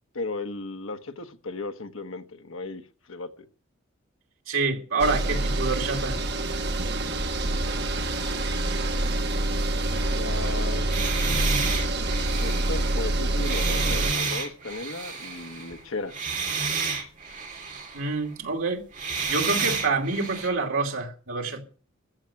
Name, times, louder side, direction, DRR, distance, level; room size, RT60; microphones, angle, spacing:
voice 1, 0.1-2.8 3.1-3.5 10.0-10.9 12.4-16.2, left 3 dB, 75° left, 1.4 m, -35 dB
voice 2, 4.5-6.2 17.9-18.8 19.3-21.6, right 3 dB, 80° right, 2.6 m, -27 dB
sound 1, 5.0-14.1, right 2 dB, 55° right, 1.6 m, -26 dB
sound 2, 10.4-15.8 16.1-18.1 18.9-20.5, right 5 dB, 40° right, 3.1 m, -31 dB
15.0 x 6.0 x 9.8 m
head